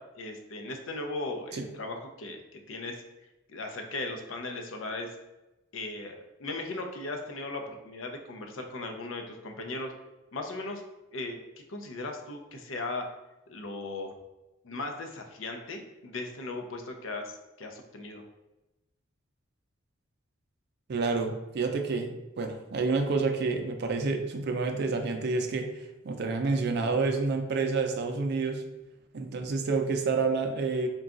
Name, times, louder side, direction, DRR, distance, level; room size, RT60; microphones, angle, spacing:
voice 1, 0.0-2.4 2.7-3.0 3.5-5.1 5.7-9.9 10.3-10.8 11.1-11.4 11.7-13.1 13.5-14.2 14.6-18.2, left 2 dB, 70° left, 4 dB, 0.6 m, -37 dB
voice 2, 20.9-25.7 26.0-28.6 29.1-30.9, right 4 dB, 55° right, 6 dB, 0.4 m, -28 dB
3.8 x 2.3 x 3.7 m, 0.99 s
head